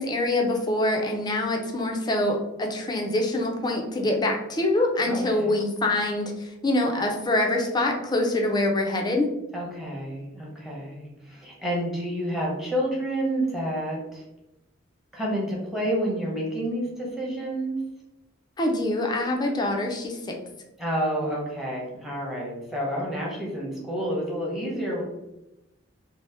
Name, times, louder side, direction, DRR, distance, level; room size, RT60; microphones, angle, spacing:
voice 1, 0.0-9.3 18.6-20.3, left 1 dB, 20° left, 1 dB, 0.4 m, -25 dB
voice 2, 5.1-5.6 9.5-14.2 15.1-17.7 20.8-25.0, equal, ahead, -4 dB, 0.8 m, -29 dB
2.7 x 2.0 x 3.3 m, 0.92 s
head